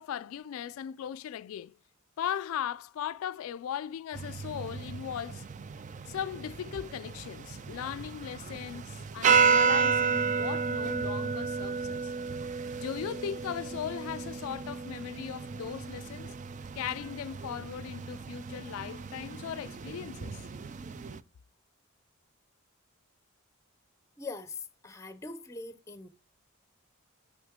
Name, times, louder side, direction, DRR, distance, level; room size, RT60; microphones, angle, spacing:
voice 1, 0.0-1.7 2.2-5.4 6.1-12.1 12.8-16.3 16.7-20.4, left 9 dB, 80° left, 0.3 m, -38 dB
Kerkklok Mendonk, 4.1-21.2, right 5 dB, 35° right, 0.3 m, -32 dB
voice 2, 24.2-26.1, left 3 dB, 15° left, 0.7 m, -42 dB
6.1 x 5.3 x 3.6 m
head